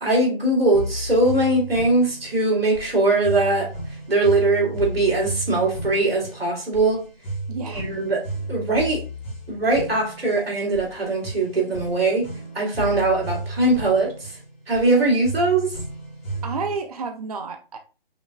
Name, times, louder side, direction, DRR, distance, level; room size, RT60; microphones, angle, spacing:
voice 1, 0.0-3.7 4.1-7.0 7.7-8.2 8.5-9.0 9.5-12.3 12.5-14.3 14.7-15.7, right 2 dB, 90° right, 2.4 m, -21 dB
sound 1, 0.7-16.8, right 1 dB, 15° left, 1.4 m, -34 dB
voice 2, 7.5-7.8 16.4-17.8, right 4 dB, 40° right, 0.4 m, -30 dB
5.5 x 3.5 x 2.2 m
figure-of-eight pair, 160°, 29 cm